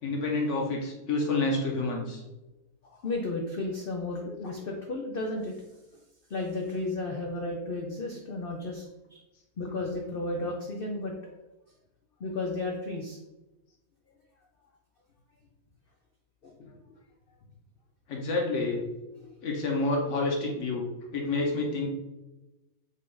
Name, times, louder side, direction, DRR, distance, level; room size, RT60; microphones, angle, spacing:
voice 1, 0.0-2.2 18.1-18.8 19.4-20.8 21.1-21.9, left 2 dB, 55° left, 0 dB, 1.2 m, -28 dB
voice 2, 2.9-5.6 6.3-8.8 9.1-9.2 9.6-11.3 12.2-13.2 16.4-16.5 19.2-19.3, left 2 dB, 75° left, 0 dB, 0.5 m, -33 dB
5.3 x 2.5 x 3.9 m, 1.0 s
omnidirectional pair, 1.7 m